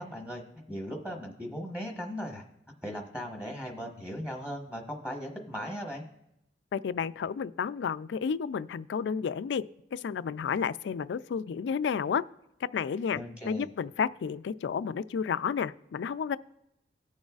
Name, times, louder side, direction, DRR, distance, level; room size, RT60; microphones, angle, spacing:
voice 1, 0.0-2.4 2.8-6.0 13.1-13.7, equal, 5° right, 1 dB, 1.1 m, -38 dB
voice 2, 6.7-12.2 12.7-13.2 13.5-16.4, left 6 dB, 75° left, 16 dB, 0.3 m, -31 dB
18.5 x 6.3 x 2.4 m, 0.85 s
head